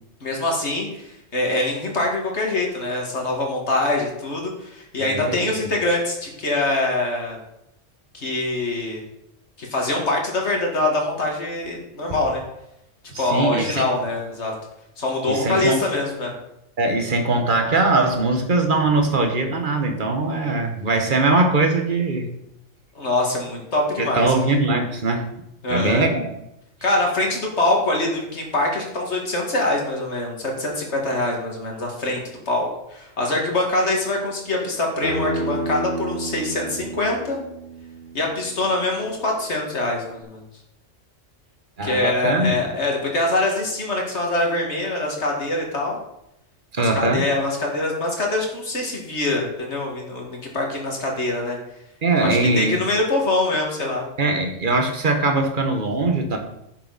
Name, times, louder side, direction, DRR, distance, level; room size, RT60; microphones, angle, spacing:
voice 1, 0.2-7.4 8.1-9.0 9.6-12.4 13.2-14.5 15.0-16.3 23.0-24.3 25.6-26.0 26.8-37.4 38.1-40.4 41.8-46.0 46.8-51.6 52.2-54.0, left 2 dB, 65° left, 0 dB, 2.5 m, -24 dB
voice 2, 5.0-5.5 13.1-13.8 15.3-15.8 16.8-22.3 24.0-25.3 25.7-26.3 41.8-42.5 46.7-47.3 52.0-52.8 54.2-56.4, right 2 dB, 45° right, 4 dB, 1.5 m, -21 dB
Acoustic guitar, 35.0-40.2, right 2 dB, 50° left, 3.0 m, -32 dB
11.0 x 7.5 x 4.2 m, 0.83 s
omnidirectional pair, 1.3 m